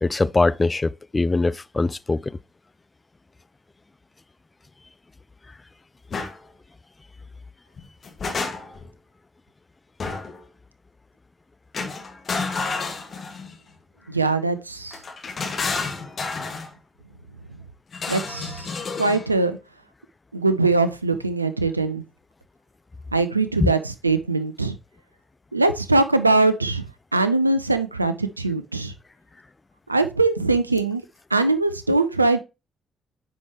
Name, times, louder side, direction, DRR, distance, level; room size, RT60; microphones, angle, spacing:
voice 1, 0.0-2.4 23.6-23.7, left 3 dB, 25° left, 0.3 m, -22 dB
sound 1, 6.1-6.3 7.8-8.9 10.0-10.4 11.7-13.6 14.9-16.7 17.9-19.3, left 4 dB, 45° left, 1.6 m, -30 dB
voice 2, 14.1-15.0 18.1-18.7 19.0-19.6 20.3-22.0 23.1-24.7 25.5-26.8 27.1-28.9 29.9-31.0 31.3-32.4, right 3 dB, 85° right, 0.4 m, -21 dB
9.2 x 4.7 x 2.9 m
figure-of-eight pair, 40°, 0 cm